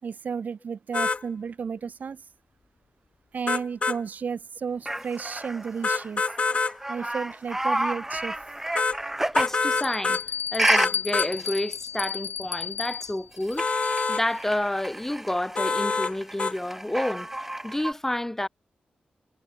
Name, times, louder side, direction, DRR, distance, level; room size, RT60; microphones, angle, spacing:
voice 1, 0.0-2.2 3.3-6.2 6.9-8.4, right 6 dB, 65° right, 2.6 m, -33 dB
sound 1, 0.9-1.2 3.5-4.0 5.8-6.7 8.8-9.0 9.3-10.2 10.8-11.3 13.6-14.2 15.6-16.1 16.4-16.5, left 4 dB, 40° left, 4.7 m, -25 dB
sound 2, 4.9-9.6 10.6-10.9 11.4-11.6 13.3-17.9, right 1 dB, 10° right, 1.6 m, -30 dB
Bell, 8.2-8.3 8.9-9.0 9.8-14.3, left 8 dB, 90° left, 3.0 m, -34 dB
voice 2, 9.3-10.2 10.5-13.7 14.1-17.3 17.6-18.5, left 1 dB, 10° left, 6.2 m, -29 dB
cardioid pair, 85°, 3 cm